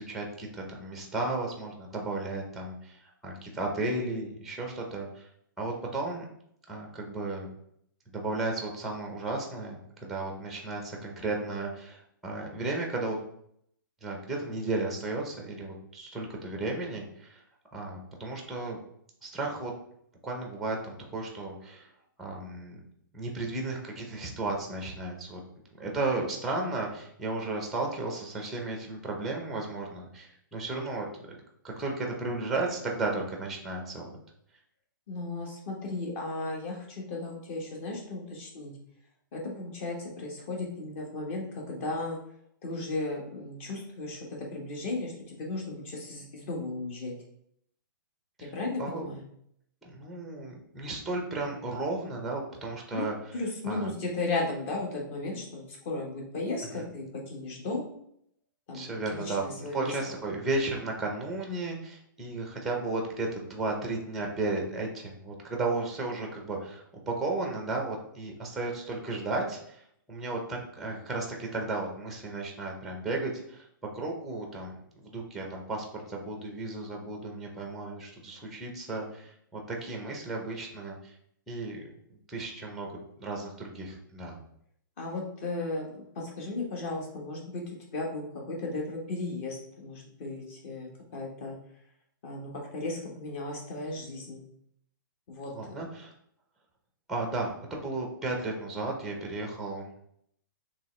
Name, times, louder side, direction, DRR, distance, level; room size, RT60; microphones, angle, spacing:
voice 1, 0.0-5.2 5.6-6.3 6.7-7.5 8.1-13.2 14.0-17.4 17.7-18.8 19.2-19.7 20.2-21.9 22.2-22.8 23.1-25.4 25.8-31.4 31.6-34.2 48.4-48.5 48.8-49.1 49.9-53.1 53.7-53.9 56.7-56.8 58.7-73.6 73.9-74.7 75.0-81.1 81.5-81.9 82.3-82.9 83.2-84.4 95.5-96.1 97.1-100.1, right 2 dB, ahead, 1 dB, 0.5 m, -34 dB
voice 2, 35.1-38.7 39.3-42.2 42.6-47.1 48.4-49.2 52.9-53.0 53.3-57.9 58.7-60.0 85.0-87.6 87.9-91.6 92.2-94.4 95.3-95.5, left 2 dB, 35° left, 0 dB, 1.1 m, -35 dB
4.6 x 3.1 x 3.1 m, 0.70 s
hypercardioid pair, 165°, 11 cm